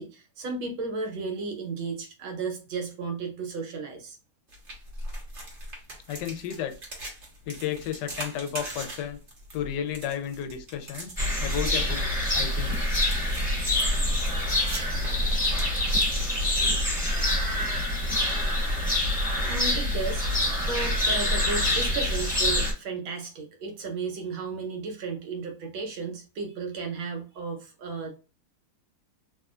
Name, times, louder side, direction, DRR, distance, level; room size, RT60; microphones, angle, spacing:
voice 1, 0.0-4.2 19.5-20.3 20.6-28.2, right 4 dB, 75° right, 1.6 m, -34 dB
sound 1, 4.5-16.9, right 1 dB, 40° right, 1.2 m, -41 dB
voice 2, 6.1-6.8 7.5-9.2 9.5-11.1 11.4-12.1 12.3-12.9 18.0-18.1, left 9 dB, 75° left, 1.0 m, -32 dB
sound 2, 11.2-22.7, left 1 dB, 5° left, 1.3 m, -26 dB
3.6 x 2.7 x 2.4 m
omnidirectional pair, 2.2 m